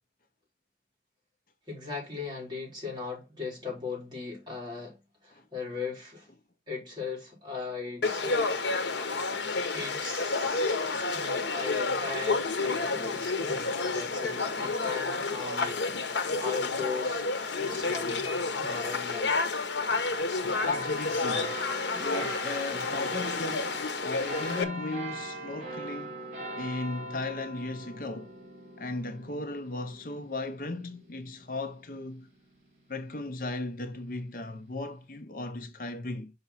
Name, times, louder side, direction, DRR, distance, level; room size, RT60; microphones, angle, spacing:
voice 1, 1.7-6.3 6.7-8.5 9.7-18.3 18.6-19.5, left 4 dB, 25° right, 3.9 m, -38 dB
Conversation / Crowd, 8.0-24.6, left 3 dB, 85° left, 1.0 m, -30 dB
sound 1, 20.5-33.4 34.0-34.1, right 1 dB, 40° right, 4.1 m, -41 dB
voice 2, 20.6-21.5 21.9-26.2 26.6-28.3 28.8-32.3 32.9-36.3, left 2 dB, 50° left, 0.8 m, -36 dB
5.7 x 5.4 x 4.1 m
head